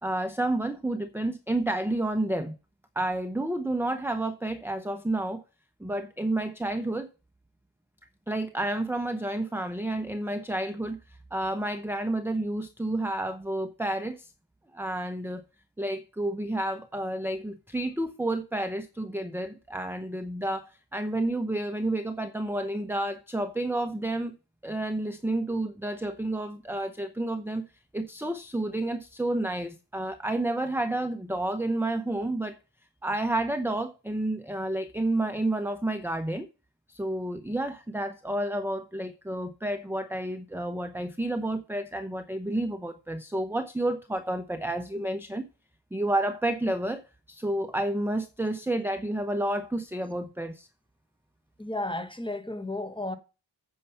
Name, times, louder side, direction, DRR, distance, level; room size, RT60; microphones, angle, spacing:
voice 1, 0.0-2.5 3.0-5.4 5.8-7.1 8.3-11.0 11.3-14.3 14.7-15.4 15.8-24.3 24.6-27.6 27.9-32.6 33.0-36.5 36.9-45.4 45.9-47.0 47.3-50.7, right 1 dB, 5° right, 0.7 m, -30 dB
voice 2, 51.6-53.2, left 2 dB, 10° left, 1.2 m, -33 dB
9.1 x 5.6 x 5.6 m
wide cardioid pair, 45°, 46 cm